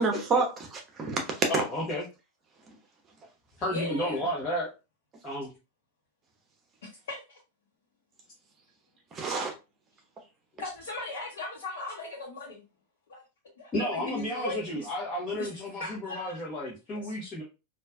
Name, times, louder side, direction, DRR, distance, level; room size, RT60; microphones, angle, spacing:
voice 1, 0.0-1.6 9.1-9.5, right 4 dB, 25° right, 1.0 m, -28 dB
voice 2, 1.5-2.0 3.6-4.7 5.2-5.5 13.7-17.4, equal, 25° left, 1.2 m, -32 dB
voice 3, 3.7-4.3 7.1-7.4 10.6-12.6 13.1-13.2 13.6-14.9 15.4-15.5 15.8-16.4 16.9-17.2, left 2 dB, 60° left, 1.0 m, -38 dB
4.4 x 2.5 x 2.5 m
figure-of-eight pair, 90°, 0 cm